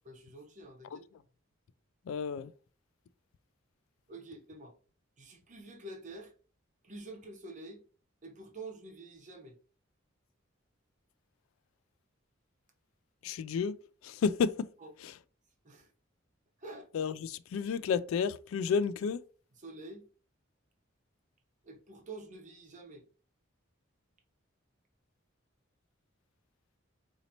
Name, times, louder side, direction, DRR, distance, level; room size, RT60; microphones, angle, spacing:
voice 1, 0.0-1.1 4.1-4.7 5.2-6.3 6.8-7.8 8.2-9.6 14.8-14.9 15.6-15.9 16.6-16.9 19.6-20.1 21.6-23.1, right 2 dB, 40° right, 1.0 m, -47 dB
voice 2, 2.1-2.5 13.2-13.8 14.0-14.7 15.0-15.1 16.9-19.2, left 6 dB, 85° left, 0.3 m, -31 dB
4.0 x 2.8 x 2.8 m
head